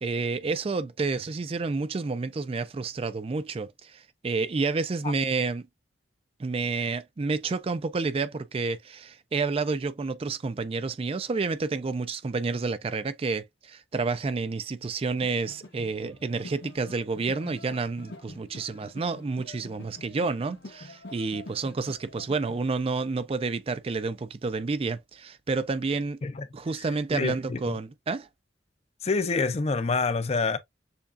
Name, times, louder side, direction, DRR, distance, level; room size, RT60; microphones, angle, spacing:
voice 1, 0.0-5.6 6.4-26.2 26.5-28.3, right 4 dB, 35° right, 0.4 m, -30 dB
sound 1, 15.2-22.6, left 2 dB, 70° left, 1.1 m, -46 dB
voice 2, 27.1-27.7 29.0-30.6, left 4 dB, 35° left, 0.5 m, -27 dB
7.0 x 2.3 x 2.5 m
head